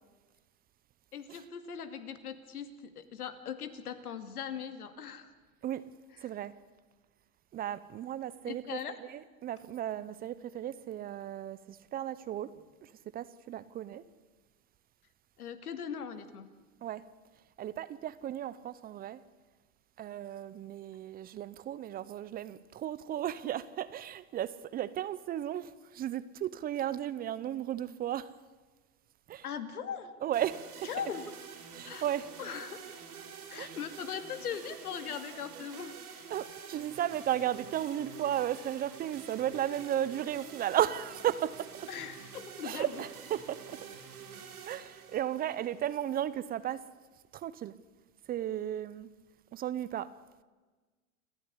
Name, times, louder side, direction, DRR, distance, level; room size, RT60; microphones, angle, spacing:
voice 1, 1.1-5.3 8.4-8.9 15.4-16.5 29.4-30.1 30.8-31.2 31.8-32.0 32.4-33.0 33.5-36.0 41.9-43.0, left 7 dB, 90° left, 2.4 m, -40 dB
voice 2, 6.2-6.6 7.5-12.6 12.8-14.1 16.8-17.1 17.6-19.2 20.0-28.3 29.3-29.4 30.2-30.7 31.7-32.3 33.6-33.8 36.3-41.7 42.6-43.9 44.7-46.9 47.3-47.8 48.3-49.1 49.5-50.1, right 11 dB, 20° right, 0.6 m, -35 dB
sound 1, 30.3-46.4, right 7 dB, 90° right, 5.7 m, -48 dB
29.0 x 10.0 x 9.8 m
hypercardioid pair, 130°, 43 cm